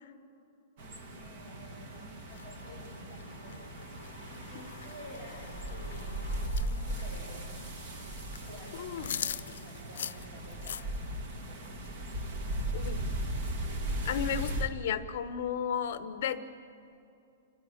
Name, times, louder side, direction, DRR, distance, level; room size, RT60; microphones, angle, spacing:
voice 1, 0.8-6.3 6.6-7.6 8.5-10.8 11.3-11.8, left 1 dB, 15° right, -6 dB, 2.9 m, -51 dB
sound 1, 0.8-14.7, right 1 dB, 35° right, 1.6 m, -38 dB
sound 2, 2.3-11.2, left 8 dB, 80° left, 0.5 m, -44 dB
voice 2, 8.8-9.1 12.7-13.0 14.0-16.4, left 8 dB, 45° left, 10 dB, 1.1 m, -33 dB
29.0 x 10.0 x 9.9 m, 2.6 s
hypercardioid pair, 175°, 0 cm